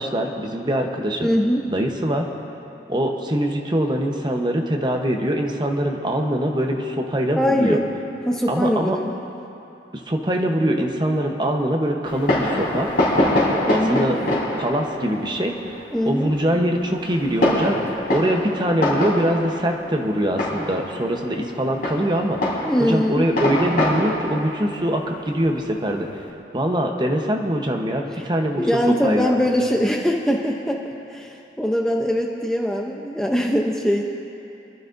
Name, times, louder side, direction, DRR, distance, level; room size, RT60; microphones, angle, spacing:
voice 1, 0.0-1.3 1.7-2.3 2.9-7.8 8.5-9.0 9.9-12.9 13.7-14.3 14.6-15.5 16.0-17.8 18.1-26.2 26.5-29.3, right 1 dB, 25° right, 2 dB, 0.9 m, -23 dB
voice 2, 1.2-1.7 7.4-7.8 8.3-9.1 13.7-14.2 15.9-16.3 22.7-23.3 28.6-30.8 31.1-34.0, equal, 5° left, 0 dB, 0.6 m, -22 dB
Fireworks, 12.0-26.2, left 1 dB, 50° left, 3.7 m, -25 dB
27.0 x 12.0 x 2.6 m, 2.9 s
head